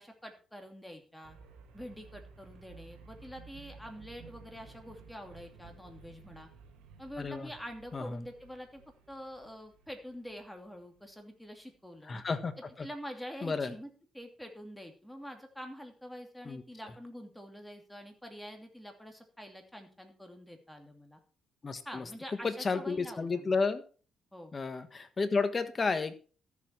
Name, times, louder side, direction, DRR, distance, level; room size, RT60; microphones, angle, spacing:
voice 1, 0.0-1.4 1.7-6.5 7.0-8.8 9.1-12.2 12.8-21.2 21.8-23.5 24.3-24.5, equal, 5° left, 4 dB, 2.7 m, -46 dB
sound 1, 1.2-11.2, right 5 dB, 85° right, 2.6 m, -55 dB
voice 2, 7.2-7.5 7.9-8.2 12.1-12.9 13.4-13.7 16.4-16.6 21.6-22.1 22.4-23.8 24.5-26.2, left 4 dB, 35° left, 10 dB, 1.5 m, -32 dB
13.5 x 7.4 x 4.6 m, 0.38 s
cardioid pair, 90°, 0 cm